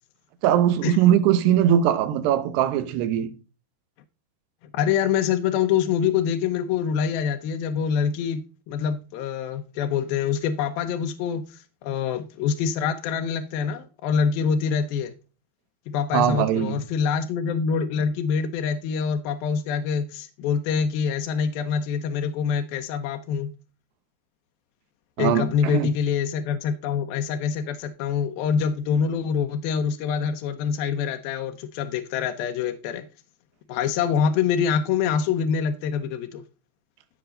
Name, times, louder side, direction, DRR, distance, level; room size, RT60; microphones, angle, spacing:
voice 1, 0.4-3.3 16.1-16.8 25.2-25.9, right 10 dB, 85° right, 3.1 m, -21 dB
voice 2, 4.7-15.1 15.9-23.5 25.2-33.1 33.7-36.4, left 7 dB, 75° left, 2.4 m, -25 dB
14.5 x 6.0 x 3.8 m
omnidirectional pair, 4.7 m